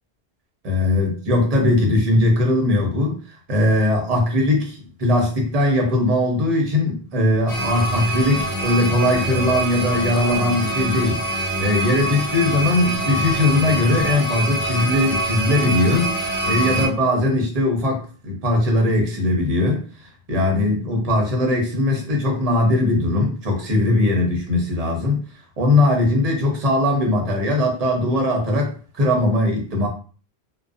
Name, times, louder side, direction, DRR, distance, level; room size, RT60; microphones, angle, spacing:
voice 1, 0.6-19.8 20.3-25.2 25.6-29.9, left 1 dB, 40° right, 1 dB, 0.6 m, -20 dB
sound 1, 7.5-16.9, right 1 dB, 55° left, 1.0 m, -25 dB
2.4 x 2.1 x 2.4 m, 0.40 s
omnidirectional pair, 1.1 m